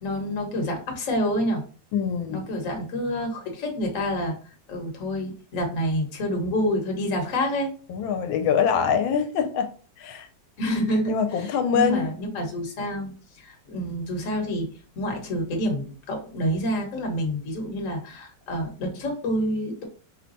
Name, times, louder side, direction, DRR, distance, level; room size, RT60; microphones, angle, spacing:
voice 1, 0.0-1.6 2.3-4.3 4.7-7.7 10.6-14.7 15.0-19.8, equal, 45° left, 1.3 m, -28 dB
voice 2, 1.9-2.4 7.9-9.7 10.0-10.3 11.1-12.1 17.2-17.4, left 7 dB, 85° left, 1.4 m, -24 dB
4.9 x 2.2 x 3.9 m
omnidirectional pair, 2.1 m